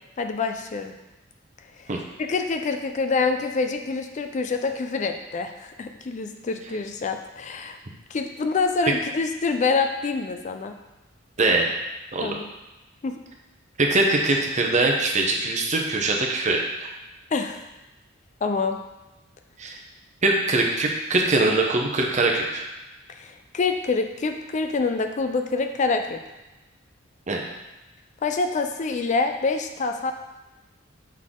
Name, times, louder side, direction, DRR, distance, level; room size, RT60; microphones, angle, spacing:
voice 1, 0.2-0.9 1.8-1.9 2.2-7.8 8.1-10.7 12.2-12.5 13.0-13.2 17.3-17.7 18.4-18.8 23.1-26.2 28.2-30.1, left 4 dB, 40° left, 6 dB, 0.4 m, -26 dB
voice 2, 11.4-11.7 12.1-12.4 13.8-16.6 19.6-19.7 20.2-22.6 27.3-27.4, right 2 dB, 40° right, 1 dB, 0.8 m, -22 dB
6.4 x 4.1 x 3.7 m, 1.0 s
head